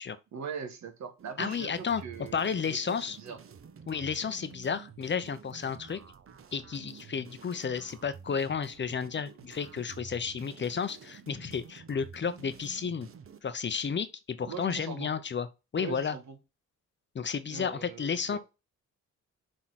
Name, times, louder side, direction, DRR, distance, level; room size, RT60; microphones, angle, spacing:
voice 1, 0.3-3.4 14.4-15.1 15.8-16.4 17.5-18.4, right 6 dB, 70° right, 1.8 m, -41 dB
sound 1, 1.2-13.4, right 6 dB, 50° right, 0.9 m, -50 dB
voice 2, 1.4-2.0 2.3-3.2 3.9-6.0 6.5-13.1 13.4-15.5 15.7-16.2 17.1-18.4, left 6 dB, 40° left, 0.8 m, -32 dB
6.2 x 3.9 x 5.8 m
cardioid pair, 100°, 29 cm